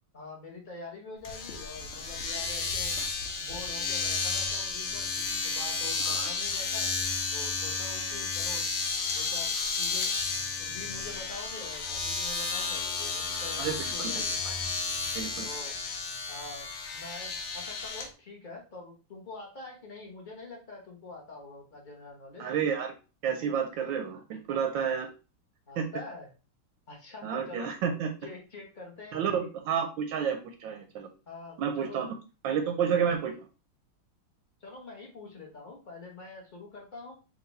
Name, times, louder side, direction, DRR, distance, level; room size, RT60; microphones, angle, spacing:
voice 1, 0.1-3.0 3.4-6.9 7.3-8.7 9.1-10.2 10.6-14.4 15.4-15.8 16.3-22.5 25.7-26.3 26.9-27.7 28.2-29.5 31.3-32.0 34.6-37.1, left 3 dB, 30° left, -1 dB, 0.9 m, -45 dB
Domestic sounds home sounds, 1.2-18.1, left 4 dB, 75° left, 1.7 m, -32 dB
voice 2, 13.6-14.5 15.1-15.5 22.4-22.9 23.2-25.1 25.8-25.9 27.2-28.1 29.1-31.1 31.6-32.1 32.4-33.3, right 7 dB, 75° right, 5 dB, 1.2 m, -30 dB
4.6 x 2.6 x 3.9 m, 0.32 s
omnidirectional pair, 2.4 m